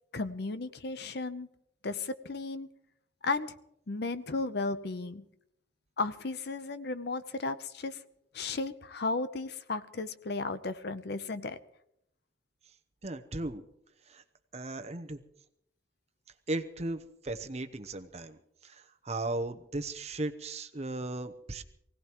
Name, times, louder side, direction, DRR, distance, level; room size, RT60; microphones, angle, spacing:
voice 1, 0.1-1.5 1.8-2.7 3.2-3.5 3.9-5.2 6.0-8.0 8.3-11.6, left 3 dB, 60° left, 12 dB, 0.7 m, -34 dB
voice 2, 13.0-13.6 14.1-14.2 14.5-15.2 16.5-21.6, right 2 dB, 35° right, 9 dB, 0.8 m, -36 dB
24.0 x 17.0 x 3.1 m, 0.77 s
head